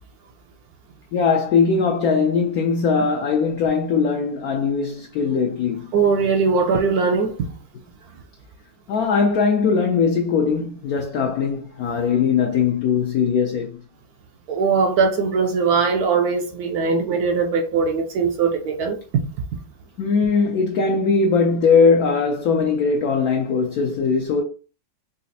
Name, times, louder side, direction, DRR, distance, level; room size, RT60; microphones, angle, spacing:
voice 1, 1.1-5.9 8.9-13.8 20.0-24.4, left 5 dB, 75° left, 0.8 m, -20 dB
voice 2, 5.9-7.5 14.5-19.2, right 5 dB, 70° right, 1.0 m, -20 dB
3.9 x 2.4 x 2.7 m
omnidirectional pair, 2.0 m